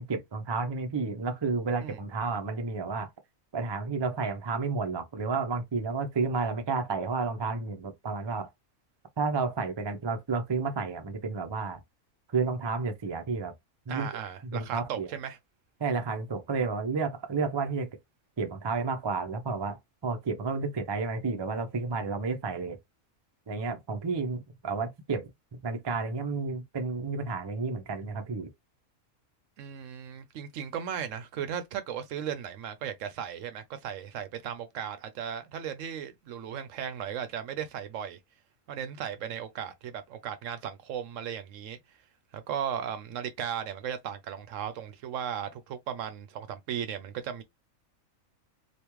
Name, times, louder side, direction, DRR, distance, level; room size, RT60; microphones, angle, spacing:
voice 1, 0.0-3.1 3.5-8.5 9.2-11.8 12.3-13.5 13.9-14.1 14.4-15.1 15.8-17.9 18.4-22.8 23.5-25.3 25.6-28.5, right 4 dB, 30° right, 0.5 m, -31 dB
voice 2, 13.9-15.4 29.6-38.2 38.7-41.8 42.3-47.4, right 8 dB, 70° right, 0.9 m, -36 dB
3.4 x 2.4 x 3.0 m
omnidirectional pair, 1.4 m